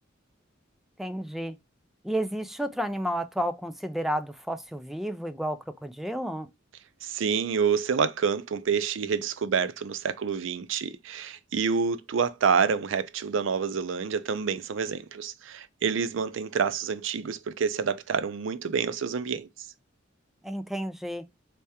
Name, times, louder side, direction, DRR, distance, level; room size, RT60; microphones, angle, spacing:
voice 1, 1.0-1.6 2.0-6.5 20.4-21.2, equal, ahead, 0.3 m, -31 dB
voice 2, 7.0-19.5, right 6 dB, 70° right, 0.4 m, -28 dB
3.4 x 3.2 x 2.8 m
head